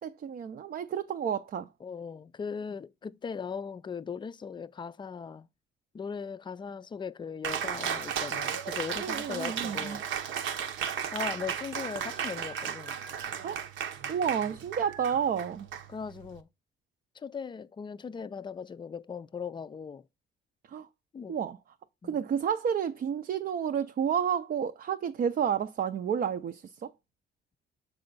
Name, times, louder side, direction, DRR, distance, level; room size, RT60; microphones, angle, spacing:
voice 1, 0.0-1.7 9.0-10.0 13.4-13.7 14.1-15.7 20.7-20.9 21.3-21.6 22.0-26.9, right 8 dB, 50° right, 0.5 m, -30 dB
voice 2, 1.8-5.5 5.9-10.0 11.1-13.0 15.9-16.5 17.2-20.1 21.1-21.4 22.0-22.2, left 6 dB, 25° left, 0.4 m, -39 dB
Cheering, 7.4-16.4, right 8 dB, 75° right, 0.8 m, -35 dB
6.9 x 4.2 x 3.9 m
cardioid pair, 90°, 20 cm